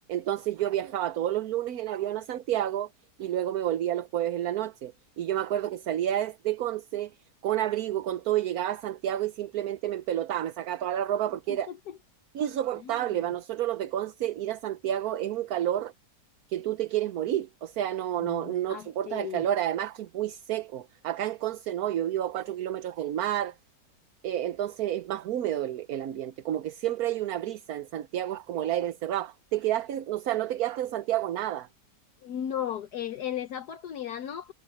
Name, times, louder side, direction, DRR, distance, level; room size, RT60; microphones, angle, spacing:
voice 1, 0.1-2.9 3.2-7.2 7.4-11.7 12.3-15.9 16.5-23.5 24.2-31.7, right 12 dB, 65° right, 1.2 m, -30 dB
voice 2, 18.2-19.4 32.2-34.5, left 10 dB, 70° left, 1.4 m, -35 dB
omnidirectional pair, 1.9 m